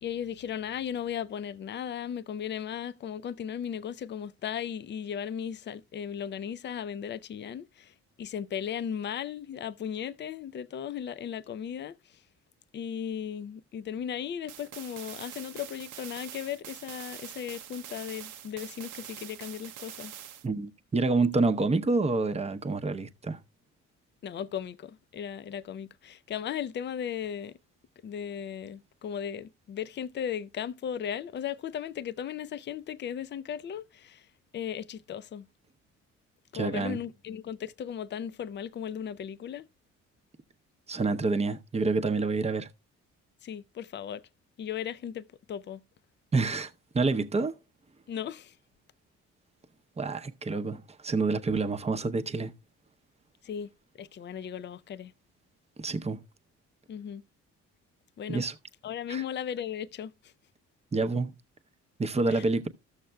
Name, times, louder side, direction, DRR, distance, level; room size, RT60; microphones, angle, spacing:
voice 1, 0.0-12.2 12.7-20.1 24.2-27.6 28.0-34.3 34.5-35.5 36.5-39.7 43.4-44.2 44.6-45.8 48.1-48.5 53.4-53.7 54.0-55.1 56.9-57.2 58.2-58.4 58.8-60.3 62.3-62.5, left 9 dB, 35° left, 0.5 m, -36 dB
sound 1, 14.5-20.5, right 11 dB, 85° right, 0.7 m, -45 dB
voice 2, 20.4-23.4 36.5-37.0 40.9-42.7 46.3-47.5 50.0-52.5 55.8-56.2 58.3-58.5 59.1-59.2 60.9-61.3 62.0-62.7, right 3 dB, 20° right, 0.7 m, -28 dB
14.0 x 6.5 x 2.2 m
cardioid pair, 90°, 30 cm